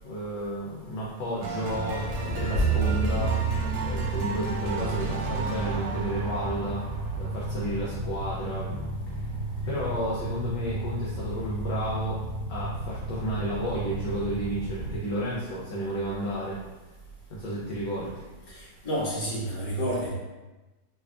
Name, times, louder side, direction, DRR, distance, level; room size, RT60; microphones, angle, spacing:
voice 1, 0.0-3.5 3.8-6.8 7.2-9.3 9.7-12.2 12.5-16.6 17.3-18.3, right 1 dB, 70° left, -6 dB, 1.1 m, -32 dB
sound 1, 1.4-8.2, right 3 dB, 80° right, 1.5 m, -36 dB
sound 2, 1.7-15.0, right 1 dB, 25° right, 1.1 m, -34 dB
sound 3, 2.1-6.2, right 4 dB, 55° right, 0.8 m, -29 dB
voice 2, 18.5-20.1, equal, 30° left, -8 dB, 1.2 m, -30 dB
3.3 x 3.3 x 2.4 m, 1.1 s
omnidirectional pair, 2.3 m